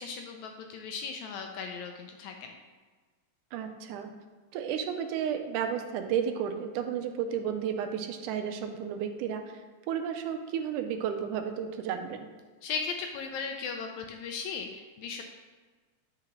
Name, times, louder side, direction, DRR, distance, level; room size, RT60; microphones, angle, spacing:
voice 1, 0.0-2.5 12.6-15.2, left 5 dB, 80° left, 4 dB, 1.7 m, -37 dB
voice 2, 3.5-4.1 4.5-9.6 9.9-12.3, right 8 dB, 80° right, 6 dB, 2.0 m, -32 dB
9.6 x 4.8 x 3.0 m, 1.4 s
omnidirectional pair, 3.6 m